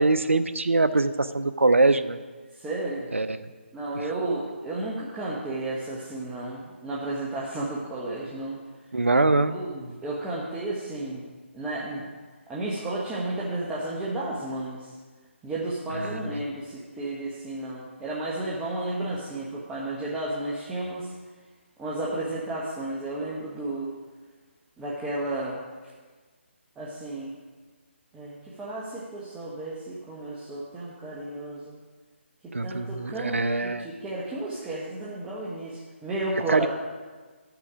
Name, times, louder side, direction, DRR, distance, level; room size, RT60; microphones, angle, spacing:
voice 1, 0.0-2.2 3.1-3.5 3.9-4.1 8.9-9.6 15.9-16.4 32.5-33.9 36.5-36.7, right 2 dB, 80° right, 13 dB, 0.7 m, -23 dB
voice 2, 2.6-3.1 3.7-8.6 9.5-11.2 11.5-12.1 12.5-14.9 15.4-21.1 21.8-23.9 24.8-25.6 26.8-27.3 28.1-31.8 32.6-36.7, right 2 dB, 10° right, -7 dB, 1.1 m, -32 dB
13.5 x 6.0 x 4.9 m, 1.4 s
figure-of-eight pair, 150°, 7 cm